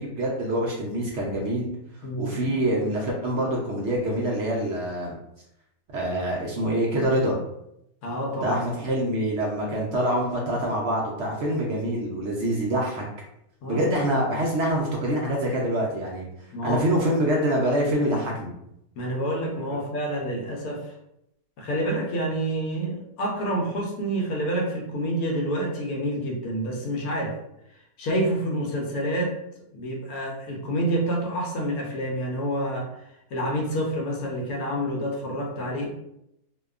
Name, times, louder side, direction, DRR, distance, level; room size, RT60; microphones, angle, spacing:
voice 1, 0.0-1.7 2.2-5.1 5.9-7.4 8.4-13.0 13.7-16.3 16.6-18.5, right 1 dB, 70° right, -3 dB, 0.6 m, -25 dB
voice 2, 2.0-2.5 8.0-8.6 13.6-13.9 16.5-17.1 19.0-20.9 21.6-27.4 28.0-29.4 29.7-33.0 33.3-35.9, right 1 dB, 75° left, 0 dB, 1.0 m, -28 dB
2.7 x 2.2 x 2.3 m, 0.80 s
omnidirectional pair, 1.7 m